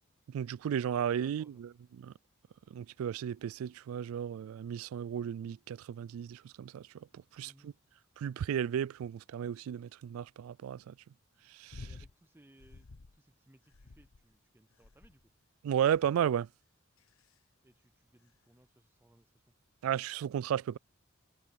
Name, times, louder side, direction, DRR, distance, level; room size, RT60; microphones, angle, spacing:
voice 1, 0.3-2.1 2.7-6.9 7.4-7.7 8.2-10.9 11.5-11.9 15.6-16.5 19.8-20.8, right 9 dB, 90° right, 0.3 m, -34 dB
voice 2, 1.2-1.6 7.4-7.7 11.8-15.2 17.6-19.4, right 1 dB, 10° right, 0.6 m, -64 dB
sound 1, 11.7-12.1 12.6-13.2 13.7-14.3 14.8-15.3 15.9-16.3 17.0-17.3 18.3-18.4, left 3 dB, 80° left, 0.9 m, -51 dB
head